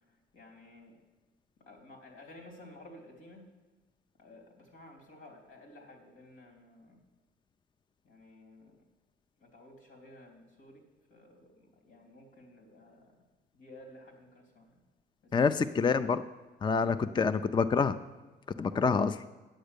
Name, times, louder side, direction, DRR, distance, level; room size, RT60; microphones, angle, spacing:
voice 1, 0.3-1.0 1.6-3.5 4.2-7.0 8.0-8.8 9.4-10.8 11.1-13.1 13.5-14.7 15.2-15.8, left 1 dB, 85° left, 1 dB, 3.1 m, -54 dB
voice 2, 15.3-16.2 16.6-18.0 18.6-19.2, left 5 dB, 25° left, 12 dB, 0.4 m, -27 dB
8.9 x 7.8 x 6.8 m, 1.2 s
cardioid pair, 90°, 20 cm